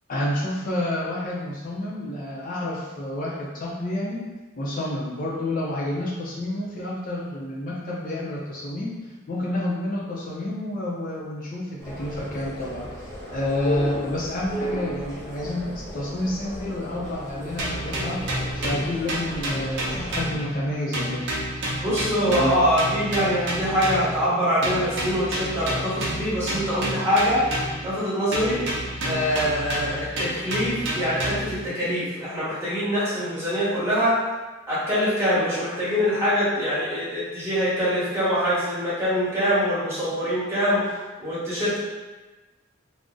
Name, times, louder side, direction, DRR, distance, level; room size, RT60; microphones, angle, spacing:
voice 1, 0.1-4.2 4.6-18.2 18.5-21.2 22.3-22.6, left 1 dB, 40° left, -5 dB, 0.4 m, -29 dB
sound 1, 11.8-20.3, equal, 15° left, 0.8 m, -35 dB
sound 2, 17.6-20.7 20.9-24.2 24.6-28.0 28.3-31.6, right 1 dB, 60° right, 0.6 m, -29 dB
voice 2, 21.8-27.4 27.8-28.7 29.0-34.1 34.7-40.8 41.2-41.8, equal, 15° right, -10 dB, 1.0 m, -24 dB
2.5 x 2.0 x 3.6 m, 1.2 s
head